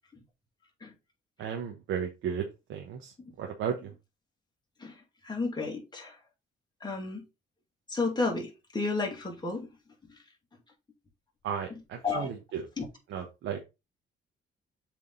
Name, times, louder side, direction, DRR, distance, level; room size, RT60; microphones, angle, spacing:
voice 1, 1.4-3.9 11.4-12.6 13.1-13.6, right 8 dB, 85° right, 1.2 m, -35 dB
voice 2, 5.2-6.1 6.8-7.2 7.9-9.7 12.0-12.3 12.8-12.9, left 3 dB, 20° left, 2.5 m, -32 dB
7.4 x 3.6 x 3.9 m
cardioid pair, 90°, 20 cm